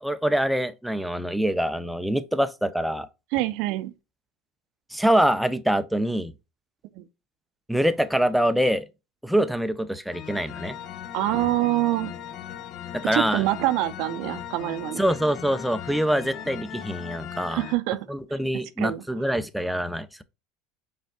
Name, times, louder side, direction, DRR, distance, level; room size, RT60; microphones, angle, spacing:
voice 1, 0.0-3.1 4.9-6.3 7.7-8.9 9.2-10.8 12.9-13.4 15.0-17.6 18.1-20.2, equal, ahead, 0.5 m, -24 dB
voice 2, 3.3-3.9 7.0-7.1 11.1-12.1 13.1-15.0 17.5-18.1 18.3-18.4 18.8-19.0, right 15 dB, 65° right, 0.5 m, -25 dB
sound 1, 10.1-17.8, left 9 dB, 55° left, 0.7 m, -38 dB
5.2 x 3.3 x 2.2 m
hypercardioid pair, 90°, 0 cm